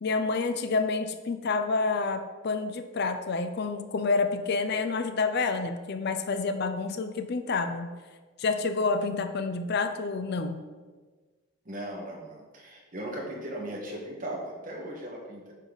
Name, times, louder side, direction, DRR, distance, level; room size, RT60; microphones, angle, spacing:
voice 1, 0.0-7.9 8.4-10.6, left 4 dB, 50° left, 8 dB, 0.4 m, -28 dB
voice 2, 11.6-15.5, right 1 dB, 40° right, -2 dB, 1.6 m, -38 dB
9.1 x 5.4 x 4.0 m, 1.4 s
head